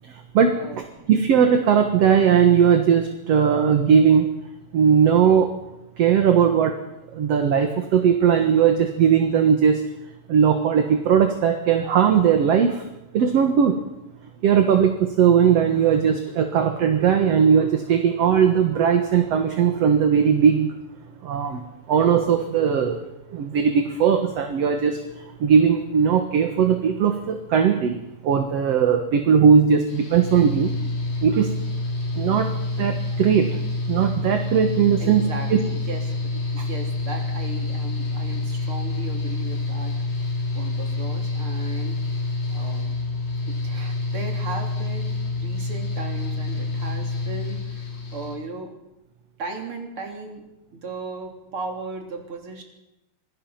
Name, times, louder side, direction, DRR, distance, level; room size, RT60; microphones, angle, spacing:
voice 1, 0.5-1.0 35.0-39.9 40.5-42.0 42.5-43.0 43.5-47.8 48.1-48.8 49.4-50.4 50.7-52.6, right 3 dB, 40° right, 2 dB, 4.1 m, -36 dB
voice 2, 1.1-4.3 4.7-5.5 6.0-6.7 7.1-9.8 10.3-12.8 13.1-13.8 14.4-20.7 21.2-21.6 21.9-23.0 23.3-25.0 25.4-28.0 28.2-30.7 31.2-31.5 32.2-32.5 32.8-33.6 33.9-35.6, right 7 dB, 55° right, 6 dB, 2.3 m, -18 dB
Mechanical fan, 29.9-48.4, left 3 dB, 65° left, 5.9 m, -28 dB
26.0 x 20.0 x 5.9 m, 0.93 s
omnidirectional pair, 3.8 m